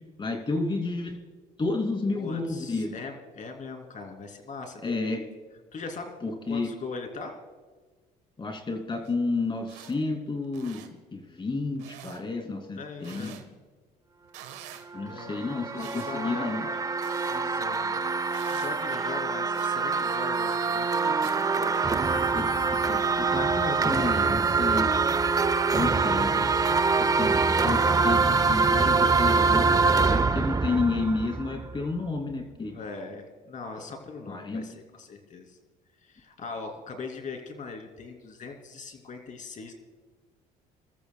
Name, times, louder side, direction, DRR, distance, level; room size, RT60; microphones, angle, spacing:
voice 1, 0.2-1.2 1.6-3.0 4.8-5.2 6.2-6.7 8.4-10.8 11.1-13.4 14.9-16.7 22.3-22.5 22.8-24.9 25.7-26.5 27.0-32.7 34.2-34.7, left 3 dB, 30° left, 3 dB, 2.7 m, -31 dB
voice 2, 2.1-5.2 5.7-7.4 12.8-13.4 15.0-15.4 15.7-16.8 17.2-18.0 18.6-21.9 32.7-35.6 36.1-39.7, left 4 dB, 50° left, 4 dB, 2.9 m, -40 dB
sound 1, 9.0-9.1 9.6-9.9 10.4-10.9 11.8-12.2 13.0-13.4 14.3-14.9 15.8-16.2 17.0-17.4 18.3-18.7 19.5-19.7 20.5-20.6 21.2-21.4, right 11 dB, 85° right, 1.3 m, -46 dB
sound 2, 14.9-31.9, right 4 dB, 20° right, 0.6 m, -25 dB
26.5 x 14.0 x 2.3 m, 1.4 s
supercardioid pair, 75°, 17 cm